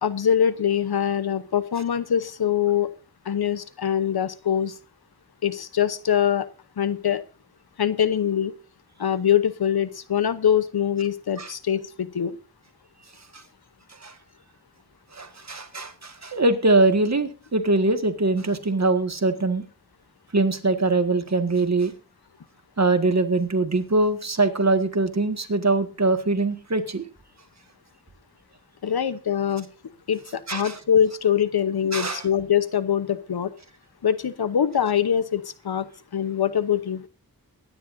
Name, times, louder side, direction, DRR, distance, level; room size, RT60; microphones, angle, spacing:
voice 1, 0.0-2.9 3.3-4.7 5.4-6.5 6.8-7.2 7.8-8.5 9.0-12.4 28.8-29.7 30.1-33.5 34.0-37.1, left 9 dB, 90° left, 14 dB, 0.9 m, -23 dB
voice 2, 15.1-19.6 20.3-21.9 22.8-27.1 30.5-30.8 31.9-32.2, right 2 dB, 45° right, 7 dB, 1.8 m, -22 dB
23.0 x 10.0 x 2.6 m, 0.32 s
wide cardioid pair, 65°, 37 cm